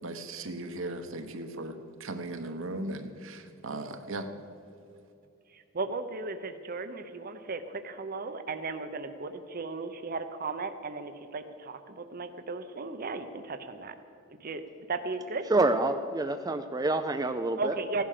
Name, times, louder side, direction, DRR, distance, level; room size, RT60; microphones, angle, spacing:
voice 1, 0.0-4.3, right 2 dB, 65° right, 7 dB, 1.2 m, -37 dB
voice 2, 5.5-13.9 14.4-14.6 14.9-15.5 17.6-18.0, right 3 dB, 45° right, 8 dB, 0.8 m, -36 dB
voice 3, 15.5-17.7, right 2 dB, 20° right, 7 dB, 0.5 m, -27 dB
16.0 x 11.5 x 6.6 m, 2.7 s
head